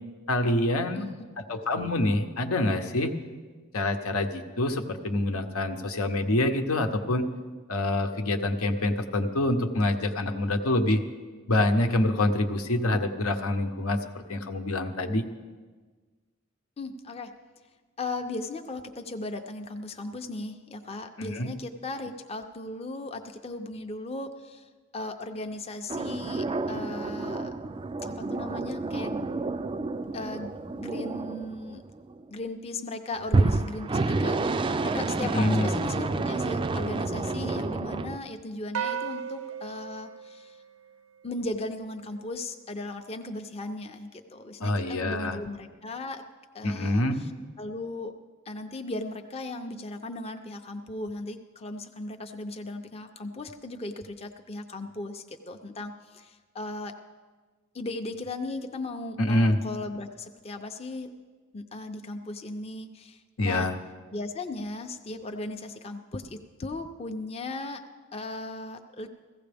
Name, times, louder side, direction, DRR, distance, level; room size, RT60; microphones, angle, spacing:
voice 1, 0.3-1.0 1.5-3.1 3.7-7.2 7.7-11.0 11.5-14.0 14.3-15.2 21.2-21.5 35.3-35.7 44.6-45.4 46.6-47.2 59.2-59.6 63.4-63.8, left 1 dB, 85° left, 6 dB, 1.0 m, -26 dB
voice 2, 16.8-17.3 18.0-27.5 28.0-29.3 30.1-30.5 30.8-31.8 32.3-40.6 41.2-46.2 46.5-47.3 47.6-48.1 48.5-56.9 57.7-61.1 61.5-63.7 64.1-67.8 68.1-69.1, left 2 dB, 30° left, 5 dB, 0.6 m, -37 dB
sound 1, 25.9-32.2 33.3-38.2, right 3 dB, 25° right, 0.3 m, -29 dB
sound 2, 38.7-41.3, right 7 dB, 85° right, 0.6 m, -35 dB
16.0 x 15.5 x 3.5 m, 1.4 s
head